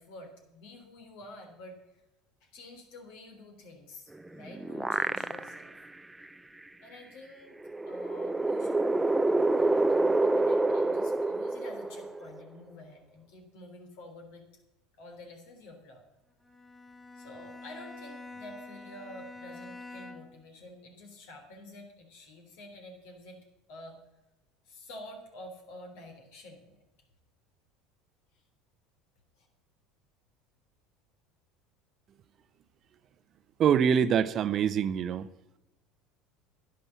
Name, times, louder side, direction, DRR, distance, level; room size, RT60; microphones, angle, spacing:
voice 1, 0.0-1.8 2.4-5.7 6.8-7.6 7.9-14.4 15.0-16.0 17.1-23.4 23.7-24.0 24.7-26.8 29.4-29.5, left 1 dB, 65° left, 3.6 m, -49 dB
sound 1, 4.2-5.8 6.2-6.3 7.6-12.4, right 2 dB, 10° right, 0.6 m, -27 dB
Bowed string instrument, 16.4-20.5, left 3 dB, 10° left, 3.2 m, -46 dB
voice 2, 33.6-35.3, right 8 dB, 45° right, 0.7 m, -25 dB
11.0 x 9.9 x 7.2 m
hypercardioid pair, 75°, 0 cm